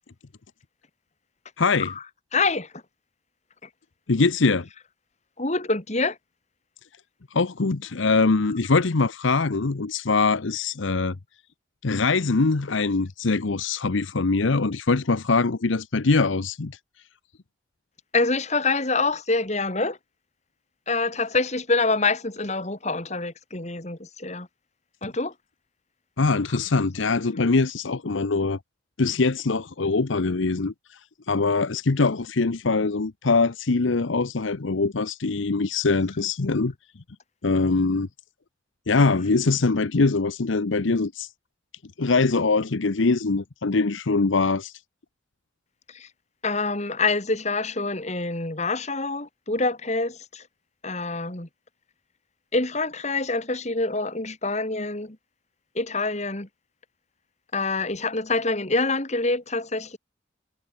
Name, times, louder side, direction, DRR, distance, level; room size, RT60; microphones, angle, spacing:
voice 1, 1.6-1.9 4.1-4.7 7.3-11.2 11.8-16.8 26.2-28.6 29.0-30.7 31.3-36.7 37.4-38.1 38.9-41.3 42.0-44.7, left 3 dB, 80° left, 0.8 m, -23 dB
voice 2, 2.3-2.7 5.4-6.2 18.1-20.0 20.9-24.5 25.0-25.3 46.4-50.4 50.8-51.5 52.5-55.2 55.8-56.5 57.5-60.0, left 3 dB, 35° left, 2.2 m, -26 dB
head